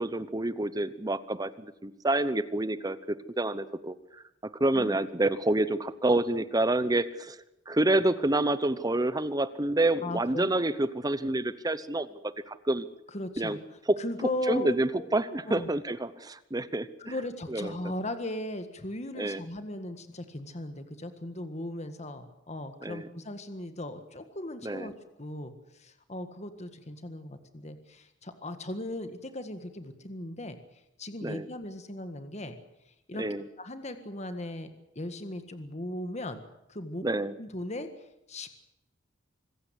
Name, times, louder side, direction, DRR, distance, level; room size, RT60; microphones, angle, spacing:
voice 1, 0.0-3.9 4.6-7.4 7.7-12.1 12.5-12.9 13.4-13.6 13.9-14.0 14.5-16.9 17.5-17.7 19.2-19.4 22.8-23.1 24.6-24.9 31.2-31.5 33.2-33.4 37.0-37.3, right 2 dB, 20° right, 15 dB, 0.9 m, -28 dB
voice 2, 10.0-10.5 13.1-15.1 15.5-15.7 17.0-24.9 25.2-30.6 31.0-32.5 33.1-33.2 33.6-34.7 34.9-36.4 36.7-37.0 37.4-38.6, left 1 dB, 35° left, 9 dB, 1.7 m, -37 dB
25.5 x 15.5 x 8.3 m, 0.89 s
head